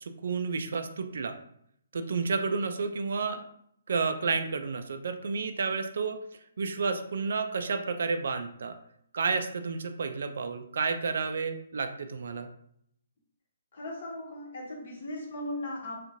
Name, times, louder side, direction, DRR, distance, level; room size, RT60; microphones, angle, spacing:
voice 1, 0.0-1.3 1.9-3.4 3.9-6.2 6.6-8.8 9.1-12.5, right 4 dB, 60° right, 7 dB, 0.3 m, -31 dB
voice 2, 13.7-16.0, left 1 dB, 45° left, -1 dB, 0.9 m, -37 dB
2.9 x 2.4 x 2.6 m, 0.71 s
hypercardioid pair, 175°, 0 cm